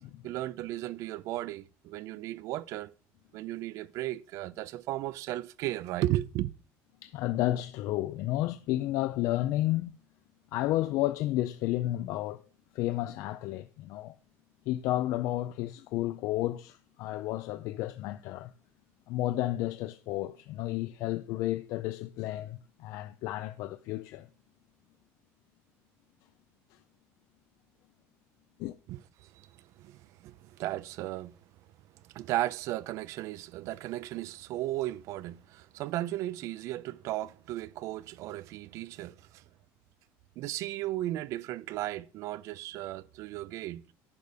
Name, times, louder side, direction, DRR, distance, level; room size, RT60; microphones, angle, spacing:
voice 1, 0.2-2.9 3.3-6.5 28.9-29.5 29.8-31.4 32.1-39.4 40.4-43.8, right 15 dB, 55° right, 0.5 m, -35 dB
voice 2, 7.0-10.0 10.5-12.4 12.7-14.1 14.7-18.5 19.1-24.3 26.7-26.8 28.6-28.8, left 15 dB, 60° left, 0.4 m, -32 dB
10.5 x 3.5 x 6.6 m
cardioid pair, 150°, 6 cm